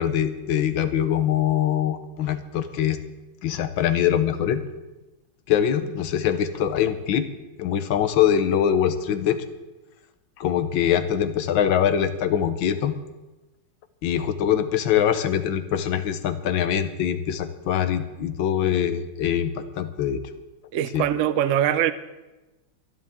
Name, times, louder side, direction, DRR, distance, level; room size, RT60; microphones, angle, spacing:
voice 1, 0.0-3.0 3.4-4.6 5.5-7.3 7.6-9.4 10.4-12.9 14.0-20.2 20.9-21.0, left 9 dB, 90° left, 1.6 m, -23 dB
voice 2, 20.7-21.9, right 10 dB, 70° right, 0.7 m, -22 dB
23.0 x 10.5 x 3.7 m
omnidirectional pair, 2.1 m